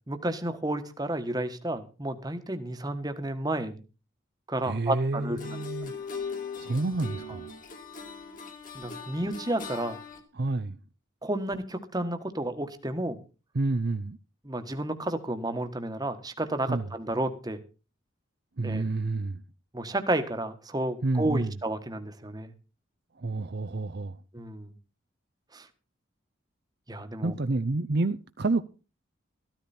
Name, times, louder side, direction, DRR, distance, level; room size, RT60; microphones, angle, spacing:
voice 1, 0.1-3.8 4.5-5.6 8.7-10.0 11.2-13.2 14.4-17.6 18.6-18.8 19.7-22.5 24.3-24.7 25.5-25.7 26.9-27.3, right 1 dB, 20° right, 1.4 m, -31 dB
voice 2, 4.6-5.9 6.6-7.5 10.3-10.8 13.5-14.2 16.7-16.9 18.6-19.4 21.0-21.5 23.2-24.2 27.2-28.6, right 2 dB, 55° right, 0.7 m, -29 dB
sound 1, 5.2-10.2, left 4 dB, 40° left, 2.5 m, -40 dB
14.0 x 13.5 x 4.3 m
head